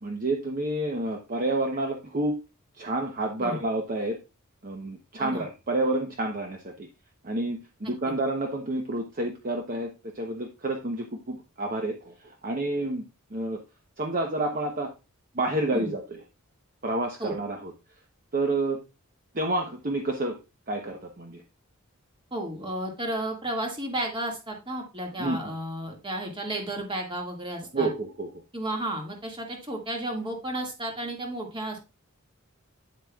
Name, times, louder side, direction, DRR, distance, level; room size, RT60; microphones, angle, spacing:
voice 1, 0.0-2.4 2.8-4.2 4.6-6.9 7.2-13.0 13.3-13.6 14.0-14.9 15.3-16.2 16.8-17.7 18.3-18.8 19.3-20.4 20.7-21.4 25.2-25.4 27.7-28.3, right 2 dB, 40° right, 2 dB, 0.9 m, -29 dB
voice 2, 22.3-27.9 28.5-31.8, right 1 dB, 20° right, 1 dB, 2.0 m, -33 dB
9.5 x 8.0 x 2.4 m, 0.28 s
head